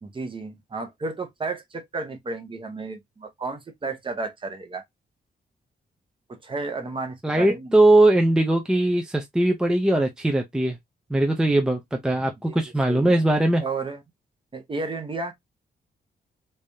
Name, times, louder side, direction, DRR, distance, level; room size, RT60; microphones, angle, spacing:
voice 1, 0.0-4.8 6.3-7.7 12.4-12.6 12.9-13.1 13.6-14.0 14.5-15.3, right 3 dB, 30° right, 0.8 m, -32 dB
voice 2, 7.2-10.8 11.1-13.6, right 1 dB, 5° right, 0.5 m, -20 dB
3.4 x 3.3 x 2.6 m
wide cardioid pair, 160°, 18 cm